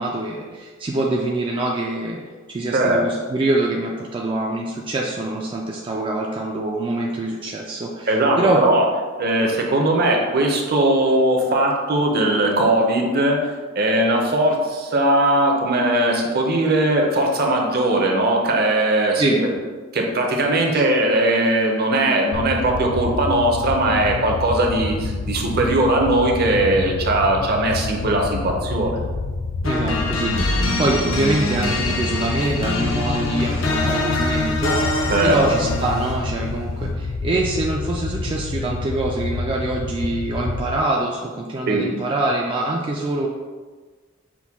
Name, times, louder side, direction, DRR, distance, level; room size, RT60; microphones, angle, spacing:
voice 1, 0.0-2.2 2.5-8.6 19.2-19.4 20.7-20.8 29.6-43.3, right 2 dB, 25° right, -2 dB, 0.3 m, -24 dB
voice 2, 8.1-8.8 9.2-13.4 13.8-19.3 19.9-29.0 35.1-35.4 41.7-41.9, right 1 dB, 50° right, 1 dB, 0.7 m, -19 dB
sound 1, 22.3-40.8, left 3 dB, 55° left, 0.4 m, -28 dB
sound 2, 29.6-36.4, left 2 dB, 80° left, 0.7 m, -24 dB
6.0 x 2.2 x 3.5 m, 1.4 s
head